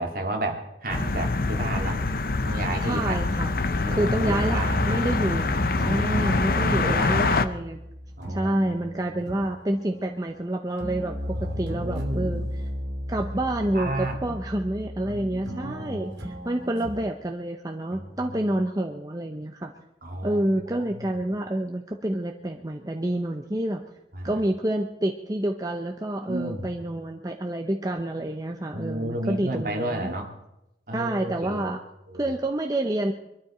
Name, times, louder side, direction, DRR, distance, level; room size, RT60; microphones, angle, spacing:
voice 1, 0.0-2.0 2.4-3.2 3.8-4.8 5.8-7.4 8.2-8.6 11.3-12.5 13.1-13.2 13.6-14.3 15.0-16.0 17.9-18.4 20.0-20.4 20.8-20.9 24.1-24.4 26.3-26.7 28.7-30.3 30.9-31.7 32.1-32.3, right 1 dB, 50° right, 3 dB, 2.2 m, -32 dB
sound 1, 0.9-7.5, left 3 dB, 55° left, 0.7 m, -25 dB
voice 2, 2.8-3.6 3.9-5.5 5.8-7.8 8.3-12.7 13.1-19.7 20.2-23.8 24.2-30.1 30.9-31.8 32.1-33.1, right 1 dB, 20° right, 4 dB, 0.7 m, -28 dB
sound 2, 4.2-17.0, equal, 80° right, 2.7 m, -35 dB
23.0 x 13.0 x 4.3 m, 0.89 s
head